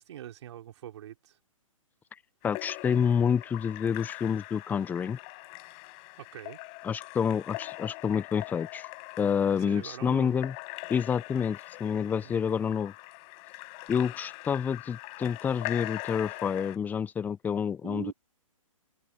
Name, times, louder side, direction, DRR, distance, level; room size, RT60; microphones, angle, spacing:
voice 1, 0.0-1.4 6.2-6.6 9.5-10.4 12.2-12.4 17.8-18.1, right 11 dB, 55° right, 5.3 m, -43 dB
Splash splatter / Drip / Trickle dribble, 2.4-16.8, left 33 dB, 35° left, 5.3 m, -42 dB
voice 2, 2.4-5.2 6.8-8.9 9.2-10.5 10.9-12.9 13.9-18.1, left 7 dB, 10° left, 0.6 m, -28 dB
hypercardioid pair, 130°, 18 cm